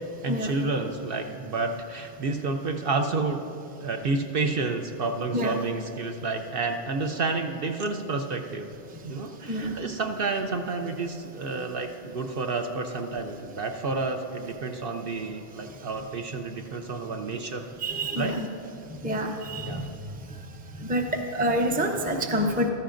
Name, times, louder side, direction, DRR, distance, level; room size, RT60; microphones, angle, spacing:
voice 1, 0.2-3.4 3.8-8.7 9.0-17.7 18.2-18.4 19.6-19.8, right 3 dB, 60° right, 4 dB, 0.7 m, -30 dB
voice 2, 17.8-18.5 19.0-19.8 20.8-22.7, equal, 10° right, 3 dB, 0.5 m, -27 dB
15.0 x 12.5 x 2.5 m, 2.6 s
omnidirectional pair, 1.2 m